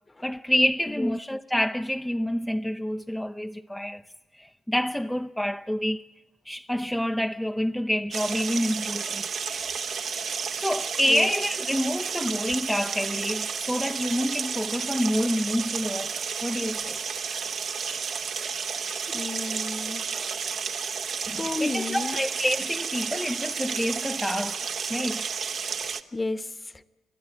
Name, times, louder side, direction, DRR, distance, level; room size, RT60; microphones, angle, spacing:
voice 1, 0.2-4.0 4.3-6.1 6.5-9.2 9.5-9.7 10.6-17.0 20.1-20.3 21.3-25.3, equal, 5° left, 0.6 m, -28 dB
sound 1, 8.1-26.0, right 6 dB, 65° right, 1.2 m, -32 dB
voice 2, 19.1-20.1 21.3-22.2 26.1-26.7, left 2 dB, 25° left, 1.1 m, -32 dB
30.0 x 12.5 x 8.7 m
supercardioid pair, 60°, 0 cm